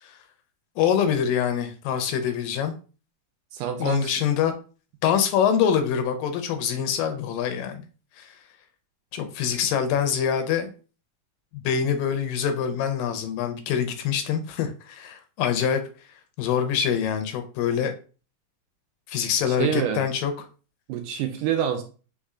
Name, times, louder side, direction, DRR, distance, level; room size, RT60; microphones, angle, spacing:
voice 1, 0.8-2.7 3.8-4.5 5.0-7.8 8.2-8.4 9.1-10.7 11.5-15.8 16.4-17.9 19.1-20.3, left 8 dB, 80° left, 8 dB, 2.2 m, -25 dB
voice 2, 3.5-4.1 19.5-20.1 20.9-21.8, right 9 dB, 80° right, 6 dB, 2.0 m, -27 dB
5.4 x 3.4 x 2.4 m, 0.36 s
omnidirectional pair, 4.0 m